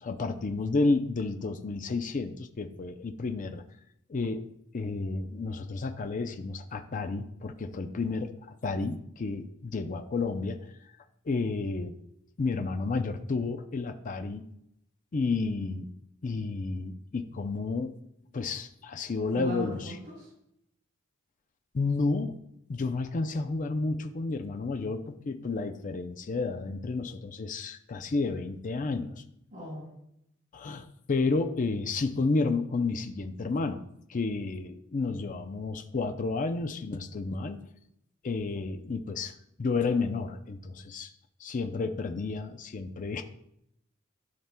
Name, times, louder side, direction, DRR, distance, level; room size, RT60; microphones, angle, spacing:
voice 1, 0.0-3.6 4.1-4.4 4.7-10.6 11.3-11.9 12.4-14.4 15.1-15.9 16.2-17.9 18.3-19.9 21.7-22.4 22.7-29.2 30.5-33.8 34.1-37.6 38.2-39.3 39.6-41.1 41.4-43.2, left 3 dB, 40° left, 7 dB, 0.5 m, -31 dB
voice 2, 19.4-20.3 29.5-29.9, right 1 dB, 40° right, -7 dB, 2.8 m, -37 dB
12.5 x 5.8 x 2.2 m, 0.77 s
head